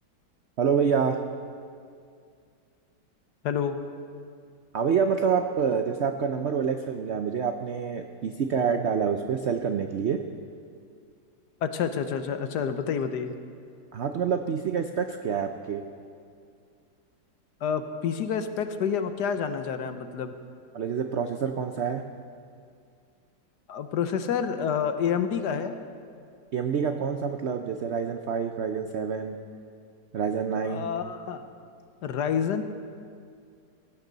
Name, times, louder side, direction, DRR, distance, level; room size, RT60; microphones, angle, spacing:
voice 1, 0.6-1.2 4.7-10.2 13.9-15.8 20.7-22.0 26.5-29.4 30.1-30.9, right 6 dB, 70° right, 6 dB, 0.6 m, -27 dB
voice 2, 3.4-3.8 11.6-13.3 17.6-20.3 23.7-25.7 30.6-31.5 32.0-32.6, left 7 dB, 70° left, 9 dB, 1.3 m, -28 dB
18.0 x 15.5 x 4.0 m, 2.3 s
omnidirectional pair, 1.9 m